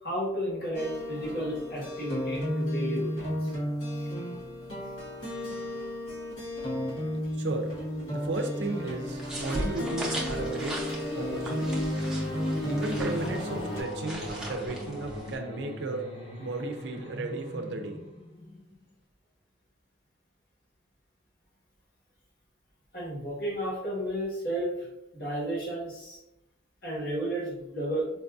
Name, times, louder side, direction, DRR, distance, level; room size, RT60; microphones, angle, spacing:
voice 1, 0.0-3.5 22.9-24.9 25.1-26.2 26.8-28.1, right 1 dB, 55° left, -5 dB, 1.3 m, -32 dB
sound 1, 0.7-13.8, equal, 90° left, 1.4 m, -33 dB
voice 2, 7.3-7.7 8.1-10.8 11.1-11.9 12.6-16.1 16.4-18.0, right 2 dB, 65° right, 4 dB, 0.4 m, -34 dB
sound 2, 9.1-15.4, right 1 dB, 5° right, 0.6 m, -38 dB
sound 3, 12.0-18.9, equal, 30° left, 1.0 m, -42 dB
4.5 x 2.5 x 2.3 m, 0.85 s
head